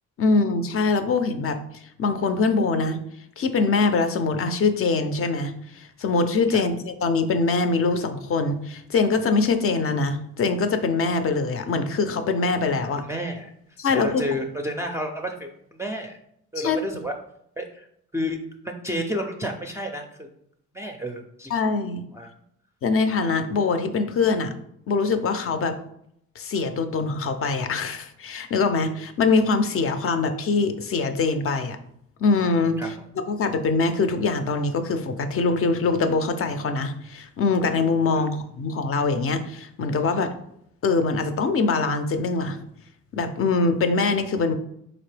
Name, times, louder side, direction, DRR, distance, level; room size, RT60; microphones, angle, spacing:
voice 1, 0.2-1.6 2.0-3.0 3.4-13.0 13.8-14.2 16.6-16.8 21.5-22.0 22.8-24.5 24.9-25.8 26.4-31.8 32.2-32.8 33.3-40.3 40.8-42.6 43.1-44.5, left 4 dB, 45° left, 8 dB, 0.5 m, -23 dB
voice 2, 13.0-13.5 13.8-16.2 16.5-17.1 17.6-17.9 18.1-18.4 18.6-20.3 20.7-21.5 22.1-22.3 32.8-33.0 38.1-38.2, equal, 10° right, 2 dB, 0.4 m, -31 dB
4.0 x 2.9 x 3.2 m, 0.72 s
cardioid pair, 90°, 30 cm